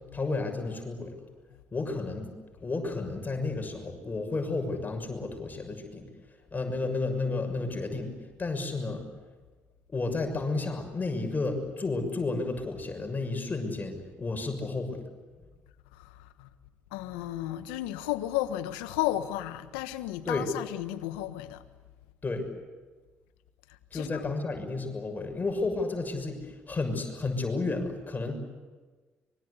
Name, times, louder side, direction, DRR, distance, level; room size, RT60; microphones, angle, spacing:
voice 1, 0.1-1.1 1.7-2.3 2.6-6.1 6.5-8.1 8.4-9.1 9.9-15.0 20.2-20.5 22.2-22.5 23.9-28.4, left 3 dB, 35° left, 6.6 m, -32 dB
voice 2, 15.9-16.5 16.9-21.6 23.9-24.3, left 14 dB, 90° left, 1.3 m, -33 dB
25.0 x 23.5 x 8.4 m
hypercardioid pair, 55°, 5 cm